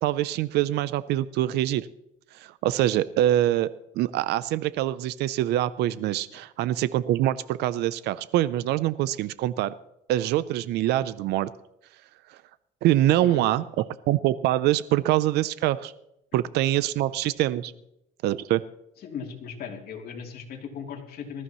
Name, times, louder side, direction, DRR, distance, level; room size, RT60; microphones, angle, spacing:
voice 1, 0.0-1.9 2.3-3.7 4.0-9.7 10.1-11.5 12.8-15.9 16.3-17.7 18.2-18.6, right 14 dB, 80° right, 16 dB, 0.6 m, -24 dB
voice 2, 13.2-13.7 19.0-21.4, left 6 dB, 65° left, 1 dB, 3.1 m, -38 dB
19.5 x 14.0 x 3.1 m, 0.81 s
cardioid pair, 110°, 17 cm